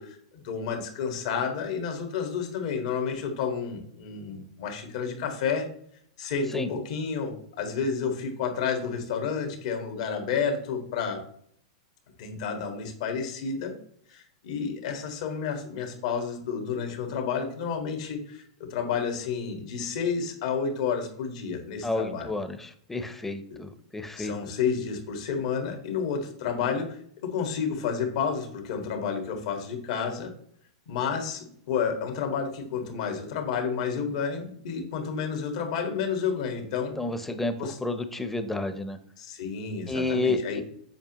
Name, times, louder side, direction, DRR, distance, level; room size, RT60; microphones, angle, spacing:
voice 1, 0.0-5.7 6.2-11.2 12.2-13.7 14.1-22.3 23.5-23.6 24.2-30.3 30.9-36.9 37.6-37.8 39.2-40.6, left 6 dB, 65° left, 3 dB, 1.6 m, -30 dB
voice 2, 21.8-24.3 37.0-39.0 39.9-40.6, left 2 dB, 5° left, 9 dB, 0.7 m, -30 dB
7.2 x 5.2 x 2.9 m, 0.63 s
hypercardioid pair, 130°, 3 cm